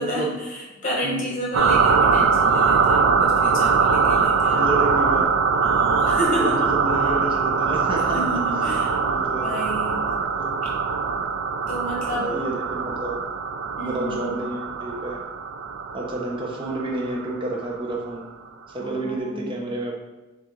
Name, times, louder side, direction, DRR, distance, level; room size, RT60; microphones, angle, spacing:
voice 1, 0.0-4.7 5.6-6.6 8.1-9.0 9.4-10.0 11.7-12.3 13.8-14.4 18.8-19.6, equal, 35° left, -4 dB, 1.1 m, -30 dB
sound 1, 1.5-17.8, right 5 dB, 65° right, 0.3 m, -22 dB
voice 2, 4.6-5.2 6.4-8.4 9.0-9.6 10.3-10.6 12.1-13.2 13.8-15.2 15.9-18.3 18.7-19.9, right 2 dB, 25° right, -1 dB, 0.6 m, -30 dB
5.7 x 2.4 x 3.1 m, 1.1 s
head